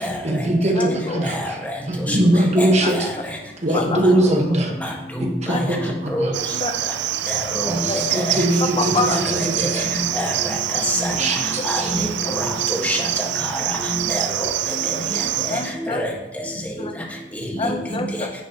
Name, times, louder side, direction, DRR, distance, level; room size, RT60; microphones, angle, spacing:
voice 1, 0.0-3.1 3.6-4.9 5.2-6.3 7.6-9.9 11.1-11.9, right 1 dB, 40° right, 1 dB, 1.4 m, -22 dB
voice 2, 0.7-1.2 2.8-2.9 3.7-4.0 5.5-5.6 6.5-6.7 7.9-8.0 8.6-9.2 12.2-12.3 15.5-16.0 16.8-16.9 17.6-18.3, left 3 dB, 30° left, 5 dB, 0.8 m, -26 dB
Cricket, 6.3-15.7, right 12 dB, 70° right, 0.4 m, -25 dB
voice 3, 7.5-8.2 9.3-9.4 9.7-10.6 10.8-11.1 11.6-12.1 12.3-12.5 12.8-13.0 13.7-14.2 15.8-16.1, equal, 10° left, -2 dB, 1.6 m, -25 dB
10.5 x 7.2 x 3.0 m, 1.1 s
head